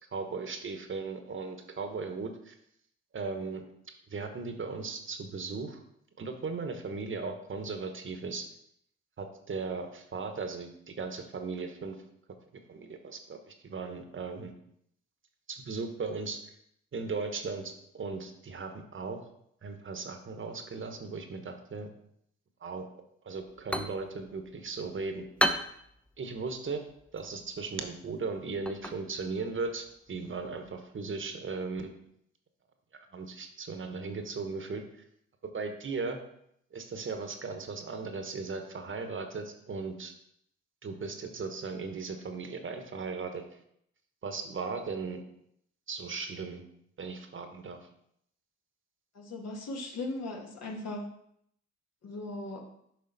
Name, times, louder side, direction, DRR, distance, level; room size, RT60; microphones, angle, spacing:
voice 1, 0.1-2.6 3.1-3.6 4.1-5.8 6.2-8.5 9.2-12.0 12.7-14.5 15.5-16.4 16.9-19.2 19.6-21.9 22.6-22.9 23.2-25.2 26.2-26.8 27.1-31.9 33.1-34.8 35.4-36.2 36.7-40.1 40.8-43.4 44.2-45.2 45.9-46.6 47.0-47.8, right 4 dB, 45° right, 6 dB, 1.1 m, -37 dB
sound 1, 23.4-30.8, equal, 5° left, 0.6 m, -37 dB
voice 2, 49.1-51.1 52.0-52.7, left 2 dB, 60° left, 1 dB, 1.6 m, -38 dB
6.7 x 5.0 x 4.0 m, 0.72 s
supercardioid pair, 60°, 29 cm